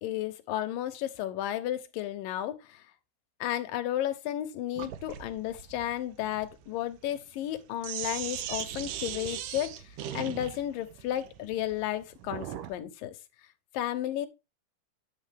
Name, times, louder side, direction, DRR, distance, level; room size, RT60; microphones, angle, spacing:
voice 1, 0.0-2.8 3.4-9.8 10.1-13.1 13.7-14.3, left 12 dB, 75° left, 2.6 m, -33 dB
Sink (filling or washing), 4.8-12.8, right 11 dB, 75° right, 2.3 m, -39 dB
10.5 x 7.6 x 3.5 m
omnidirectional pair, 4.2 m